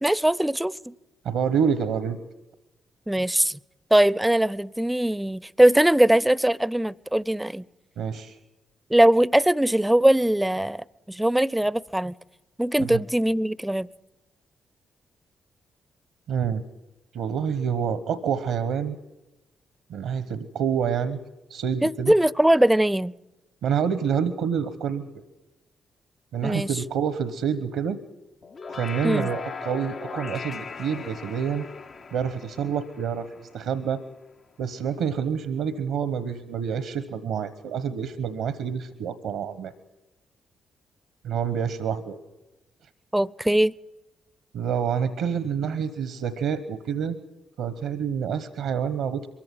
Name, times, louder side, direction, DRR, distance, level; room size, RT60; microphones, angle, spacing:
voice 1, 0.0-0.9 3.1-3.6 3.9-7.6 8.9-12.1 12.6-13.9 21.8-23.1 26.4-26.7 29.0-29.3 43.1-43.7, right 1 dB, 10° right, 23 dB, 0.7 m, -21 dB
voice 2, 1.2-2.2 8.0-8.4 12.9-13.0 16.3-16.6 17.1-19.0 19.9-21.2 21.5-22.1 23.6-25.0 26.3-28.0 28.7-31.6 32.1-33.3 33.5-34.0 34.6-39.7 41.2-42.2 44.5-47.2 47.6-49.3, right 7 dB, 75° right, 14 dB, 1.1 m, -27 dB
sound 1, 28.4-33.9, left 4 dB, 50° left, 0.8 m, -38 dB
23.0 x 14.5 x 9.4 m, 1.0 s
hypercardioid pair, 40°, 0 cm